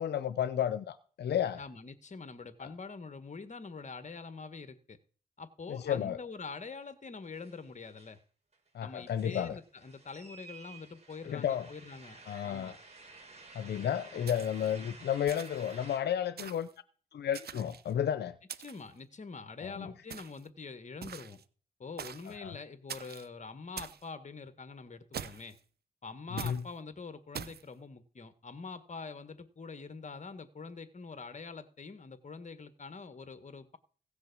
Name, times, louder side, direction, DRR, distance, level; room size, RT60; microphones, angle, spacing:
voice 1, 0.0-1.6 2.6-2.7 5.7-6.2 8.7-9.6 11.2-11.7 12.3-12.8 13.5-16.7 17.1-18.4 19.6-19.9 22.3-22.5 26.4-26.6, left 9 dB, 85° left, 0.6 m, -32 dB
voice 2, 1.6-5.0 5.4-8.2 8.8-12.8 14.1-14.3 18.6-21.4 21.8-25.6 26.0-33.8, left 4 dB, 45° left, 1.7 m, -45 dB
sound 1, 6.8-6.9 7.1-8.2 8.5-16.0, right 3 dB, 40° right, 5.5 m, -53 dB
sound 2, 14.3-14.7 15.3-15.7 16.4-16.7 17.3-17.9 18.5-18.9 20.1-20.5 21.0-21.4 22.0-22.3 22.9-23.3 23.8-24.0 25.1-25.6 26.4-26.6 27.3-27.6, right 8 dB, 70° right, 0.8 m, -43 dB
16.5 x 6.3 x 6.2 m
cardioid pair, 60°, 17 cm